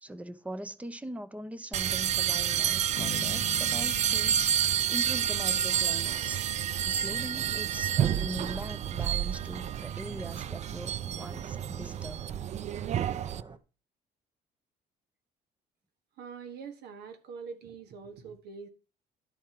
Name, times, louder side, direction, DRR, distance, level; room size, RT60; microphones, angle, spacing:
voice 1, 0.0-4.4 4.9-6.4 6.8-12.3, right 1 dB, 10° right, 0.7 m, -41 dB
sound 1, 1.7-13.4, right 9 dB, 45° right, 0.4 m, -29 dB
sound 2, 3.0-6.0, left 9 dB, 35° left, 0.4 m, -44 dB
sound 3, 5.4-13.6, right 4 dB, 25° right, 0.9 m, -52 dB
voice 2, 16.2-18.7, right 5 dB, 75° right, 1.5 m, -44 dB
11.5 x 4.4 x 5.9 m
cardioid pair, 110°, 17 cm